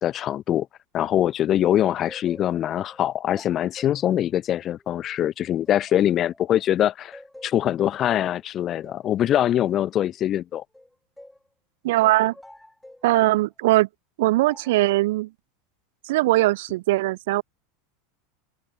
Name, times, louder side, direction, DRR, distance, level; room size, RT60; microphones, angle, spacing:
voice 1, 0.0-0.7 0.9-10.6, left 11 dB, 40° left, 1.1 m, -23 dB
sound 1, 1.7-6.7 7.1-11.5 12.0-13.4 14.4-14.9, left 1 dB, 5° left, 7.1 m, -49 dB
voice 2, 11.8-12.3 13.0-13.9 14.2-15.3 16.1-17.4, right 18 dB, 75° right, 0.7 m, -20 dB
open air
supercardioid pair, 110°, 0 cm